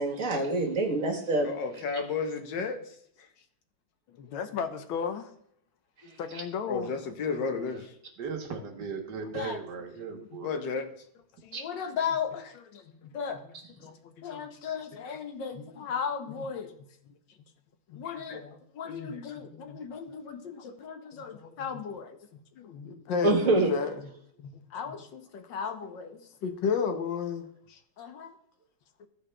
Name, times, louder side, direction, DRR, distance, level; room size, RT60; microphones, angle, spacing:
voice 1, 0.0-1.5 6.1-6.2 11.5-11.6 23.2-23.7, right 2 dB, 40° right, 1.7 m, -26 dB
voice 2, 1.4-2.8 6.7-7.9 9.3-9.6 10.4-10.9 11.6-12.5 13.1-13.4 14.2-16.7 17.9-18.4 18.7-22.2 22.8-23.9 24.7-28.3, left 6 dB, 65° left, 1.5 m, -34 dB
voice 3, 4.1-5.3 6.2-7.0 10.1-10.4 11.4-11.6 12.6-13.1 13.8-15.2 15.5-15.8 16.4-16.5 17.1-17.2 17.9-18.0 18.3-18.5 18.8-19.8 21.1-21.8 22.3-22.9 23.2-23.3 24.0-24.1 24.4-25.0 29.0-29.1, left 6 dB, 90° left, 1.6 m, -40 dB
voice 4, 7.2-7.8 8.2-10.6, right 5 dB, 60° right, 1.6 m, -38 dB
14.5 x 5.0 x 3.3 m
omnidirectional pair, 2.2 m